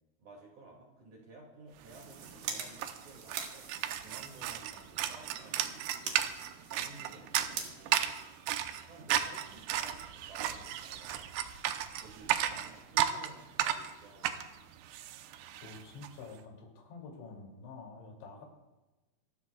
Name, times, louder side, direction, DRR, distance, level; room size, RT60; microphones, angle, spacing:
voice 1, 0.2-6.4 6.7-8.2 8.9-11.3 11.9-14.8, right 2 dB, 50° right, -1 dB, 3.2 m, -54 dB
sound 1, 1.7-9.0, right 6 dB, 65° right, 3.4 m, -46 dB
sound 2, 1.9-2.0 2.2-16.1, right 11 dB, 85° right, 2.9 m, -34 dB
voice 2, 15.6-18.4, left 4 dB, 80° left, 0 dB, 4.9 m, -48 dB
27.0 x 14.5 x 2.3 m, 1.1 s
omnidirectional pair, 5.1 m